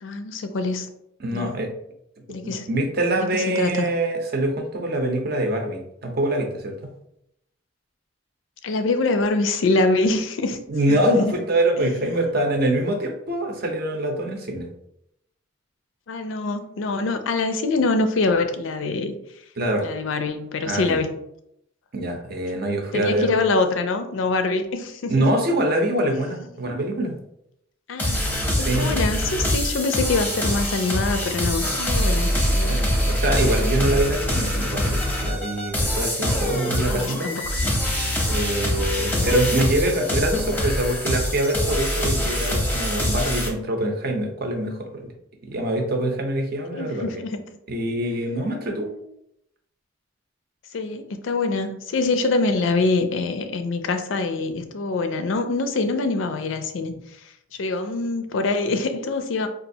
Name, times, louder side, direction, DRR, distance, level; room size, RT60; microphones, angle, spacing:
voice 1, 0.0-0.9 1.3-1.5 2.3-2.7 3.2-3.9 8.6-10.6 10.9-11.3 11.8-12.1 16.1-19.2 19.8-21.1 22.9-25.3 26.1-26.3 27.9-28.2 28.5-32.9 36.8-37.6 39.1-39.3 46.7-47.4 50.7-57.0 57.6-59.5, left 3 dB, 85° left, 8 dB, 0.4 m, -25 dB
voice 2, 1.2-1.7 2.4-6.9 10.7-14.7 19.6-19.9 20.7-21.0 21.9-23.3 25.1-27.2 28.5-28.9 32.7-37.3 38.3-45.1 45.4-47.2 47.7-48.9, right 1 dB, 55° right, 3 dB, 0.7 m, -24 dB
sound 1, 28.0-43.5, equal, 10° left, 0.6 m, -24 dB
4.0 x 2.4 x 2.7 m, 0.77 s
head